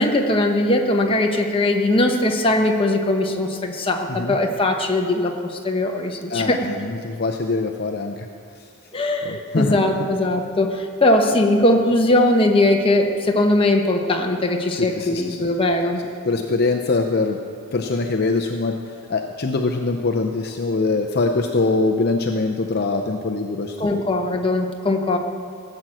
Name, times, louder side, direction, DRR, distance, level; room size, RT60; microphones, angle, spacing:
voice 1, 0.0-6.7 8.9-16.0 23.8-25.2, left 1 dB, 25° left, 2 dB, 0.9 m, -20 dB
voice 2, 6.3-8.1 9.2-9.8 14.7-15.4 16.3-17.4 17.7-18.7 19.1-23.8, left 3 dB, 45° left, 3 dB, 0.5 m, -23 dB
15.5 x 7.7 x 6.1 m, 2.3 s
head